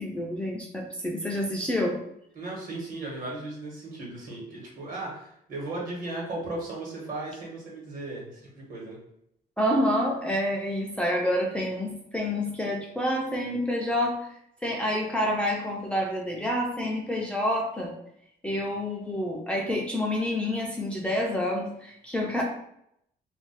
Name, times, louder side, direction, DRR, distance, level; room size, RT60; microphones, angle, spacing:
voice 1, 0.0-2.0 9.6-14.2 14.6-17.9 18.4-22.4, left 1 dB, 5° left, -3 dB, 0.3 m, -28 dB
voice 2, 2.3-9.0, right 2 dB, 55° right, -3 dB, 1.1 m, -36 dB
2.4 x 2.0 x 3.9 m, 0.75 s
cardioid pair, 155°, 16 cm